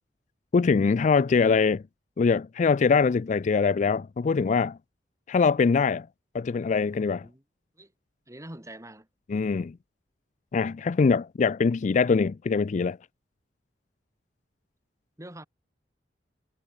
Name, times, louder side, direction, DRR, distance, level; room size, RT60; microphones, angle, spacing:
voice 1, 0.5-1.8 2.2-4.8 5.3-6.1 6.3-7.3 9.3-9.8 10.5-13.0, left 5 dB, 45° left, 0.4 m, -23 dB
voice 2, 7.1-7.4 7.8-7.9 8.3-9.1 15.2-15.5, right 1 dB, 20° right, 3.6 m, -44 dB
head